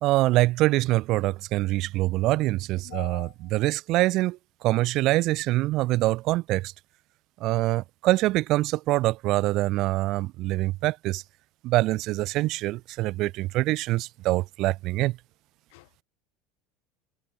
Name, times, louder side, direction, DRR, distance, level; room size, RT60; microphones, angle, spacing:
voice 1, 0.0-4.4 4.6-6.7 7.4-11.2 11.6-15.1, right 18 dB, 50° right, 1.0 m, -24 dB
voice 2, 2.8-3.5 15.7-16.0, left 29 dB, 75° left, 1.8 m, -43 dB
supercardioid pair, 135°, 0 cm